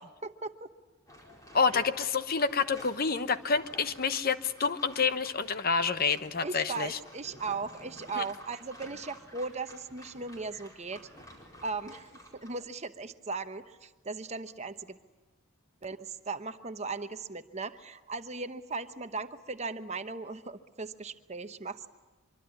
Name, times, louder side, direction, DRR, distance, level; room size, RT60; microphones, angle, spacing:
voice 1, 0.2-0.7 1.7-1.8 6.4-11.1 11.6-12.1 12.3-15.0 15.8-21.9, right 4 dB, 30° right, 10 dB, 0.9 m, -38 dB
sound 1, 1.1-12.5, equal, 15° left, 4.7 m, -52 dB
voice 2, 1.5-7.0 8.2-8.3, left 5 dB, 45° left, 12 dB, 0.9 m, -28 dB
25.0 x 24.0 x 9.7 m, 1.2 s
head